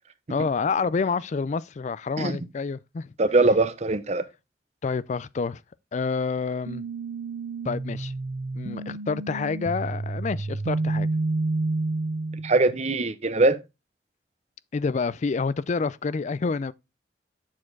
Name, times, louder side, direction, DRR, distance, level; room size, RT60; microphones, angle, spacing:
voice 1, 0.3-3.1 4.8-5.6 5.9-6.8 7.7-8.1 8.5-11.1 14.7-16.7, left 4 dB, 40° left, 0.4 m, -28 dB
voice 2, 3.2-4.3 12.4-13.6, right 2 dB, 40° right, 0.7 m, -21 dB
sound 1, 6.7-12.6, right 2 dB, 80° right, 0.6 m, -29 dB
7.3 x 4.4 x 4.5 m
head